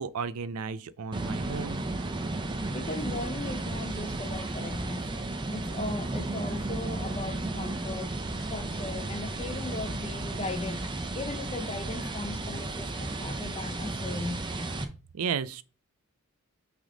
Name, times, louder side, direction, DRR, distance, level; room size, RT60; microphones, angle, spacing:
voice 1, 0.0-1.8 15.1-15.6, right 6 dB, 80° right, 0.4 m, -33 dB
sound 1, 1.1-14.8, right 2 dB, 20° right, 0.6 m, -34 dB
voice 2, 2.7-5.2 5.5-14.4, left 2 dB, 25° left, 0.7 m, -38 dB
6.2 x 3.5 x 4.9 m
head